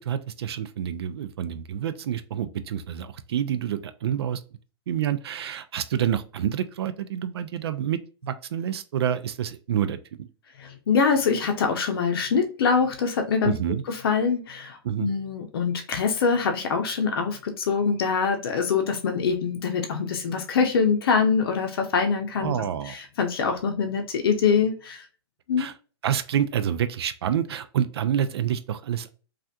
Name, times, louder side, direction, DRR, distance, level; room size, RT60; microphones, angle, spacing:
voice 1, 0.0-4.4 4.9-10.3 13.4-13.8 14.8-15.1 22.4-23.0 25.6-25.7 26.0-29.1, right 9 dB, 70° right, 11 dB, 0.4 m, -28 dB
voice 2, 10.6-13.5 13.9-25.0 25.5-25.7, left 5 dB, 60° left, 4 dB, 0.6 m, -24 dB
3.3 x 2.4 x 2.7 m, 0.37 s
hypercardioid pair, 155°, 14 cm